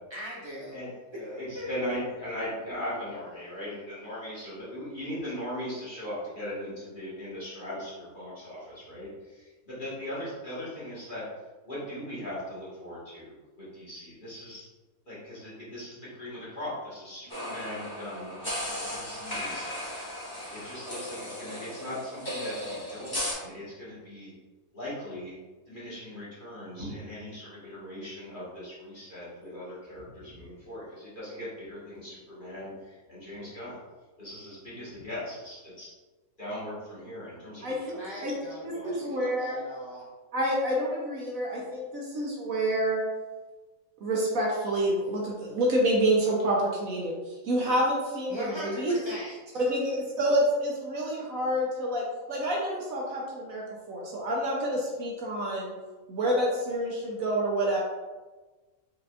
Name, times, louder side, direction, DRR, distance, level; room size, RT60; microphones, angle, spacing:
voice 1, 0.1-0.8 1.1-1.3 1.5-1.7 38.0-40.0 48.3-49.3, equal, 20° right, -8 dB, 1.2 m, -40 dB
voice 2, 0.7-11.2 11.6-14.6 15.1-18.3 18.9-19.8 20.5-24.3 24.7-25.3 25.7-33.7 34.2-35.9 36.4-39.1, left 1 dB, 35° left, -9 dB, 1.6 m, -39 dB
sound 1, 17.3-23.3, left 1 dB, 15° left, 1.2 m, -36 dB
voice 3, 38.6-39.6 40.3-43.0 44.0-48.9 49.5-55.7 56.1-57.8, right 1 dB, 65° right, -2 dB, 1.1 m, -28 dB
5.1 x 3.8 x 2.4 m, 1.2 s
omnidirectional pair, 1.6 m